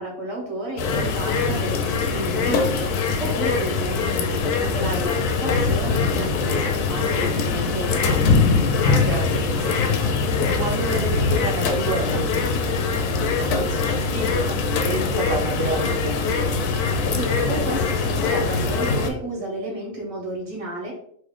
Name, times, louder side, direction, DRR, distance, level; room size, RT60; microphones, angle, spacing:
voice 1, 0.0-2.9 3.2-8.0 17.1-20.9, right 1 dB, 25° right, -3 dB, 1.3 m, -31 dB
sound 1, 0.8-19.1, left 4 dB, 85° left, 1.1 m, -22 dB
voice 2, 8.8-10.1 10.6-13.1 13.5-16.7, right 3 dB, 65° right, -2 dB, 0.9 m, -30 dB
3.2 x 2.7 x 3.7 m, 0.63 s
omnidirectional pair, 1.6 m